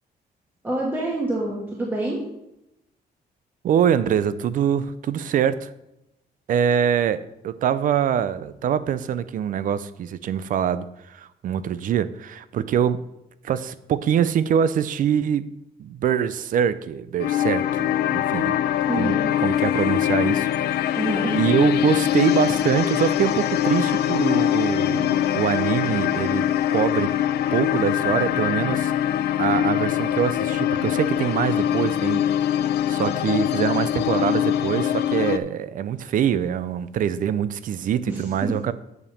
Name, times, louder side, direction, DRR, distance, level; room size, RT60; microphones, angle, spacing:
voice 1, 0.6-2.2 18.9-19.3 21.0-21.4 38.1-38.5, right 1 dB, 10° right, -4 dB, 1.4 m, -27 dB
voice 2, 3.6-5.7 6.5-13.0 13.4-15.5 15.8-18.6 19.0-21.0 21.3-27.1 27.5-28.9 29.4-38.7, right 9 dB, 55° right, 15 dB, 0.5 m, -24 dB
sound 1, 17.2-35.4, left 11 dB, 85° left, 0.5 m, -23 dB
8.0 x 5.1 x 7.1 m, 0.87 s
cardioid pair, 175°, 16 cm